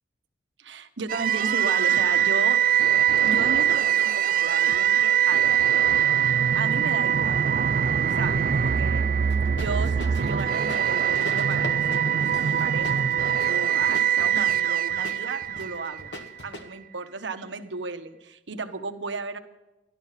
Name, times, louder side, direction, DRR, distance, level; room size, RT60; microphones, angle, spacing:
voice 1, 0.6-2.6 3.2-5.6 6.5-7.4 8.1-9.1 9.4-13.0 13.4-16.1 16.4-19.4, right 3 dB, 75° right, 8 dB, 1.1 m, -34 dB
sound 1, 1.1-16.2, right 8 dB, 50° right, 0.3 m, -23 dB
sound 2, 9.3-16.6, left 1 dB, 70° left, 1.8 m, -41 dB
13.0 x 12.0 x 5.7 m, 1.0 s
head